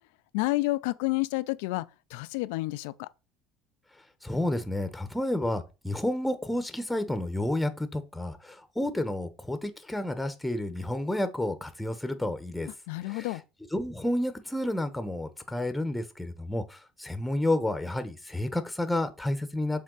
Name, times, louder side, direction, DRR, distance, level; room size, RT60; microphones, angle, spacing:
voice 1, 0.3-3.1 12.9-13.4, left 21 dB, 80° left, 0.4 m, -30 dB
voice 2, 4.2-12.7 13.1-13.3 13.7-19.8, left 1 dB, 5° left, 1.1 m, -30 dB
7.5 x 3.6 x 4.0 m
supercardioid pair, 90°, 0 cm